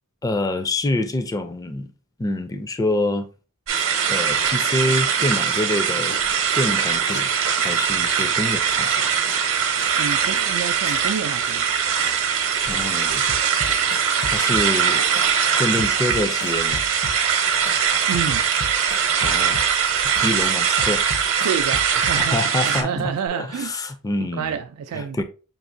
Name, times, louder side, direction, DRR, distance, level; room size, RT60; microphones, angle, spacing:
voice 1, 0.2-1.9 2.2-3.3 4.1-6.2 6.5-7.3 7.6-9.1 12.7-13.2 14.2-15.0 15.6-16.8 19.2-19.7 20.0-21.0 22.2-24.6 24.9-25.2, left 2 dB, 15° left, 0.3 m, -26 dB
sound 1, 3.7-15.4, left 1 dB, 80° left, 2.3 m, -41 dB
sound 2, 3.7-22.8, right 7 dB, 60° right, 0.7 m, -21 dB
voice 2, 10.0-11.7 18.1-18.5 21.4-22.4 22.6-23.7 24.3-25.2, right 7 dB, 85° right, 0.3 m, -28 dB
sound 3, 13.3-14.9 15.2-17.4 17.7-19.9 20.2-22.4 22.7-23.3, left 2 dB, 65° left, 0.7 m, -34 dB
5.3 x 2.7 x 2.6 m
head